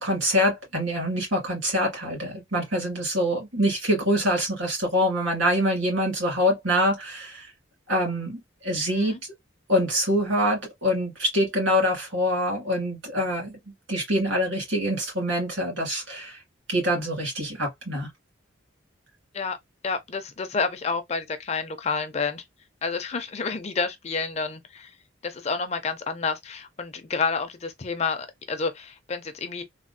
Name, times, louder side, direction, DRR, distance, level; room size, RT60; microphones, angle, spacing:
voice 1, 0.0-7.5 7.9-9.2 9.7-13.6 13.9-16.4 16.7-18.1, equal, 75° right, 2.1 m, -25 dB
voice 2, 8.9-9.2 19.3-19.6 19.8-22.4 22.8-24.9 25.2-29.6, left 4 dB, 35° left, 0.4 m, -29 dB
3.3 x 2.2 x 2.6 m
head